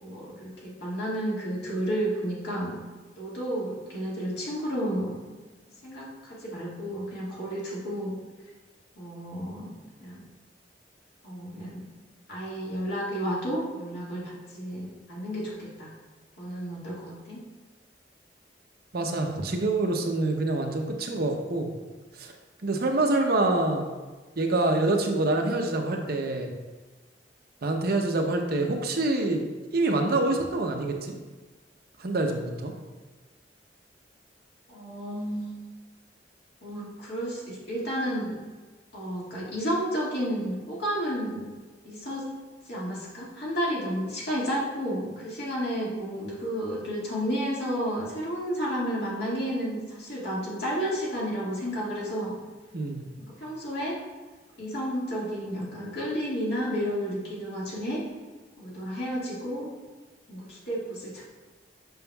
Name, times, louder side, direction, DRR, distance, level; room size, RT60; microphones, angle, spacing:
voice 1, 0.0-2.8 3.2-5.1 5.8-8.2 9.0-10.2 11.2-11.8 12.3-15.9 16.4-17.4 34.7-35.5 36.6-38.4 38.9-41.5 41.8-42.3 42.6-52.4 53.4-53.9 54.6-58.0 58.6-59.7 60.3-61.2, equal, 65° left, -6 dB, 1.9 m, -31 dB
voice 2, 18.9-21.7 22.2-22.3 22.6-23.9 24.4-26.5 27.6-29.4 29.7-31.1 32.0-32.7 52.7-53.0, right 2 dB, 60° right, 3 dB, 0.7 m, -26 dB
7.0 x 6.1 x 2.3 m, 1.3 s
head